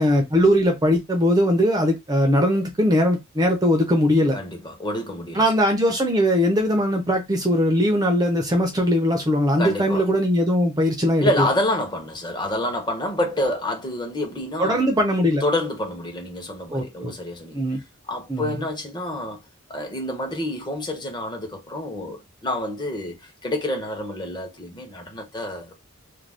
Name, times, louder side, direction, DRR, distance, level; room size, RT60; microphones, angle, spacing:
voice 1, 0.0-4.4 5.3-11.5 14.6-15.4 16.7-17.1 17.5-17.8 18.3-18.6, equal, 20° right, 0.5 m, -20 dB
voice 2, 4.3-5.5 9.6-10.1 11.2-14.8 15.4-17.6 18.1-19.4 19.7-25.7, left 1 dB, 20° left, 0.8 m, -28 dB
2.5 x 2.2 x 3.3 m
head